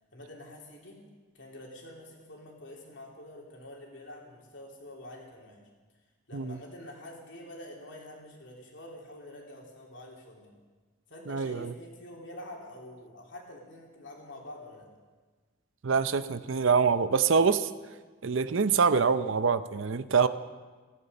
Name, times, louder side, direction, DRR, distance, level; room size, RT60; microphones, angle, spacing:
voice 1, 0.1-1.0 1.3-5.6 6.3-10.6 11.1-14.9, left 1 dB, 60° left, -1 dB, 3.2 m, -47 dB
voice 2, 11.3-11.7 15.8-17.7 18.2-20.3, right 5 dB, 70° right, 13 dB, 0.6 m, -25 dB
16.0 x 11.0 x 6.7 m, 1.4 s
head